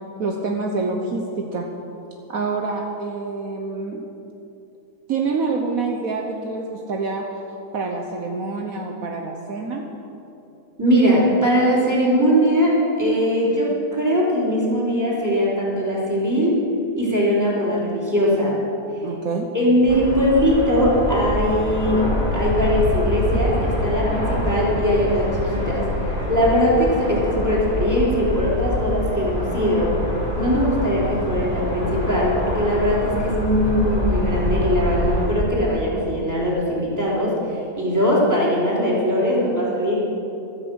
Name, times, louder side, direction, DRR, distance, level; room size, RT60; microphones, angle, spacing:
voice 1, 0.2-1.7 2.3-4.0 5.1-7.2 7.7-9.9 19.0-19.5, right 4 dB, 65° right, 2 dB, 1.5 m, -26 dB
voice 2, 10.8-16.5 17.0-18.6 19.5-29.9 30.4-40.0, equal, 10° right, -6 dB, 4.0 m, -20 dB
sound 1, 19.9-35.3, left 1 dB, 40° right, 4.6 m, -25 dB
15.0 x 13.0 x 6.4 m, 2.9 s
omnidirectional pair, 1.6 m